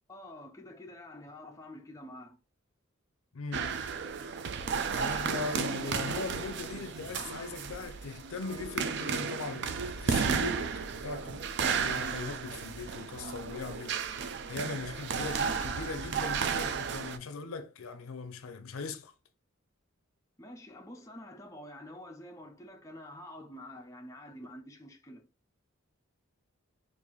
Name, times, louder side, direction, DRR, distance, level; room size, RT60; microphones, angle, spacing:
voice 1, 0.1-2.4 20.4-25.3, left 1 dB, 15° left, 0.4 m, -47 dB
voice 2, 3.3-3.8 4.9-19.1, left 4 dB, 75° left, 0.5 m, -40 dB
sound 1, 3.5-17.2, right 6 dB, 50° right, 0.3 m, -33 dB
3.9 x 2.5 x 3.0 m
head